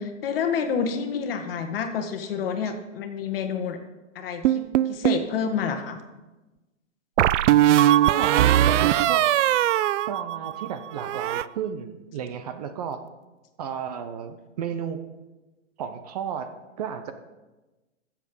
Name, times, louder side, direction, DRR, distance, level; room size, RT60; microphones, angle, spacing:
voice 1, 0.0-3.8 4.1-6.0, left 6 dB, 50° left, 6 dB, 1.5 m, -29 dB
sound 1, 4.4-5.3 7.2-10.7 11.0-11.4, right 12 dB, 75° right, 0.5 m, -20 dB
voice 2, 8.1-9.2 10.1-13.0 13.6-15.0 15.8-16.5 16.8-17.1, right 8 dB, 30° right, 9 dB, 0.7 m, -33 dB
13.5 x 7.4 x 5.4 m, 1.1 s
hypercardioid pair, 160°, 37 cm